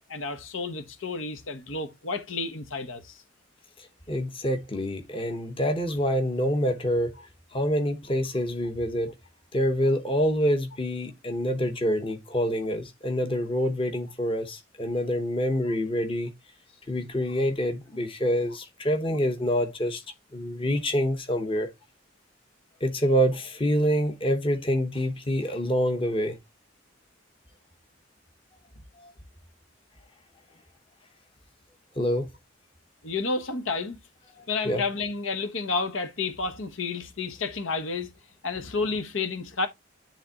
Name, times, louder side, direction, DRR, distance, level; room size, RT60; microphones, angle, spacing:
voice 1, 0.1-3.2 33.0-34.0 34.5-38.1 38.4-39.7, left 4 dB, 85° left, 1.0 m, -30 dB
voice 2, 3.8-7.1 7.5-9.1 9.5-16.3 16.9-20.0 20.3-21.7 22.8-26.4 29.0-29.1 31.9-32.3 34.6-34.8, equal, 25° left, 1.0 m, -26 dB
10.0 x 3.4 x 2.8 m
head